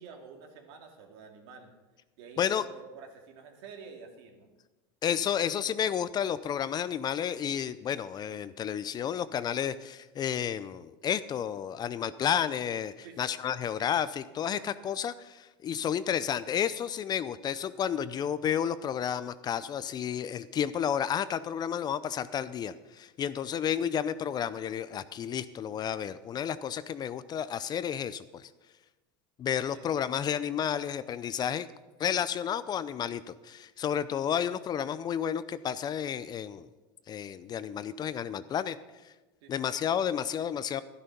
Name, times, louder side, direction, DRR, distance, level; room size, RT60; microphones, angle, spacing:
voice 1, 0.0-1.7 2.2-4.5 13.0-13.4 29.7-29.9 39.4-39.7, right 5 dB, 70° right, 3 dB, 2.4 m, -49 dB
voice 2, 5.0-28.5 29.4-31.7 32.0-36.7 37.1-38.8 39.0-39.1 39.5-40.8, left 8 dB, 30° left, 15 dB, 0.5 m, -31 dB
12.5 x 11.0 x 5.3 m, 1.1 s
supercardioid pair, 115°, 13 cm